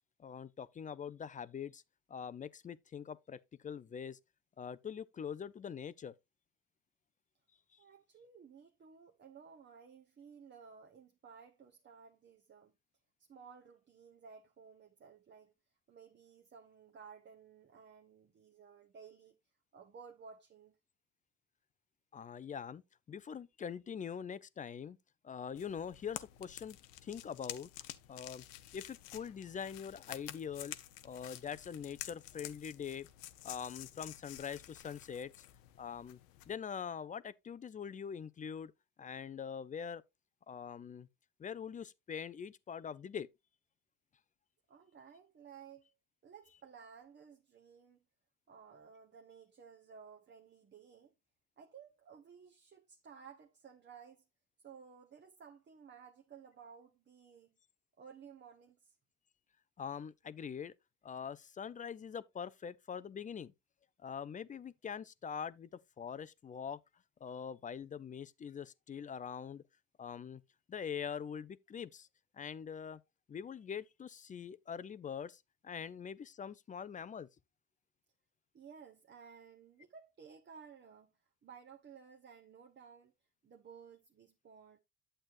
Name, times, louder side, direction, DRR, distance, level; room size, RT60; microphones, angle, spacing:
voice 1, 0.2-1.8 2.1-4.2 4.6-6.1 22.1-22.8 23.1-25.0 25.2-26.8 27.0-27.7 28.1-28.4 28.7-30.8 31.0-33.1 33.4-35.3 35.8-36.2 36.5-38.7 39.0-40.0 40.5-41.1 41.4-43.3 59.8-60.7 61.0-63.5 64.0-65.7 66.0-66.8 67.2-69.6 70.0-70.4 70.7-72.1 72.3-73.0 73.3-77.3, left 7 dB, 20° left, 0.4 m, -43 dB
voice 2, 7.8-12.7 13.2-15.5 15.9-19.4 19.7-20.8 44.7-45.9 46.2-48.0 48.5-51.1 51.6-54.2 54.6-57.6 58.0-59.0 78.5-81.1 81.4-83.1 83.4-84.8, right 6 dB, 30° right, 0.9 m, -56 dB
sound 1, 25.6-36.6, left 14 dB, 80° left, 0.7 m, -50 dB
8.9 x 7.6 x 2.5 m
hypercardioid pair, 70°, 38 cm